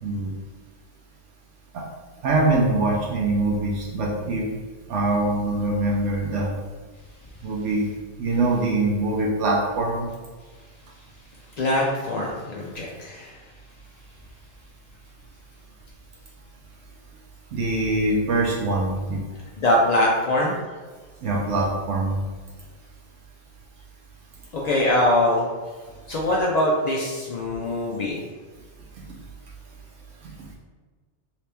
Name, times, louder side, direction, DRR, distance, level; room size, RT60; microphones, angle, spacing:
voice 1, 0.0-0.3 1.7-1.8 2.2-4.5 4.9-6.5 7.4-7.9 8.2-10.1 17.5-19.2 21.2-22.2 30.2-30.3, right 2 dB, 80° right, -3 dB, 0.9 m, -23 dB
voice 2, 11.6-13.4 19.6-20.6 24.5-25.4 26.1-28.2, left 1 dB, 75° left, -3 dB, 0.3 m, -22 dB
2.9 x 2.9 x 3.3 m, 1.4 s
omnidirectional pair, 1.2 m